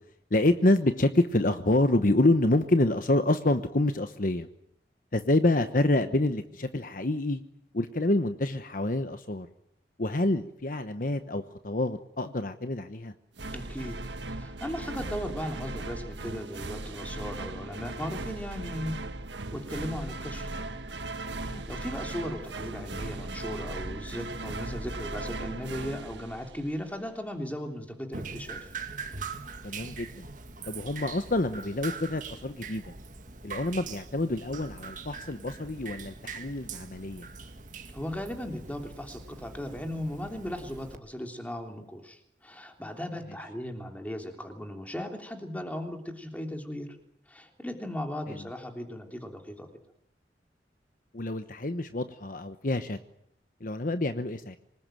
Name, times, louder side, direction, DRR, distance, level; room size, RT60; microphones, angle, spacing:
voice 1, 0.3-4.5 5.1-7.4 7.7-9.5 10.0-13.1 21.5-21.6 29.6-30.3 30.7-32.9 33.4-37.3 48.3-48.4 51.1-53.0 53.6-54.6, left 2 dB, 50° left, 9 dB, 1.0 m, -27 dB
sound 1, 13.4-27.0, right 2 dB, 85° right, 1.5 m, -38 dB
voice 2, 13.5-14.0 14.3-18.9 19.5-20.6 21.4-28.7 37.9-47.0 47.3-49.7, equal, 10° left, 4 dB, 3.3 m, -37 dB
Drip, 28.1-41.0, right 5 dB, 45° right, 1.9 m, -42 dB
26.0 x 19.5 x 9.1 m, 0.79 s
head